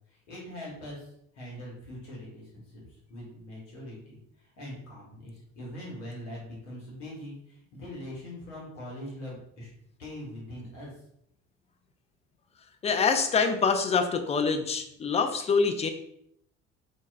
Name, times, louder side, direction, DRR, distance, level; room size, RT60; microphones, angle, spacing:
voice 1, 0.1-1.1 1.3-4.2 4.6-9.7 10.0-10.9, left 1 dB, 75° left, -4 dB, 1.2 m, -42 dB
voice 2, 12.8-15.9, left 5 dB, 20° left, 7 dB, 0.4 m, -25 dB
3.9 x 2.3 x 2.3 m, 0.72 s
hypercardioid pair, 60°, 37 cm